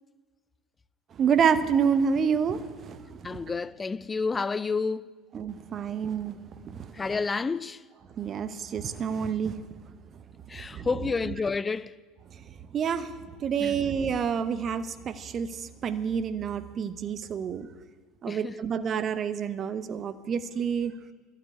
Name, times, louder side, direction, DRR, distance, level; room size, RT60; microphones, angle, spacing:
voice 1, 1.2-3.2 5.3-6.4 6.6-6.9 8.2-9.6 10.7-10.9 12.7-13.1 13.4-17.7 18.2-20.9, right 7 dB, 35° right, 0.8 m, -28 dB
voice 2, 3.2-5.1 6.9-7.8 10.5-11.9 13.6-13.8 18.3-18.6, left 4 dB, 20° left, 0.4 m, -30 dB
12.0 x 7.9 x 9.5 m
figure-of-eight pair, 65°, 0 cm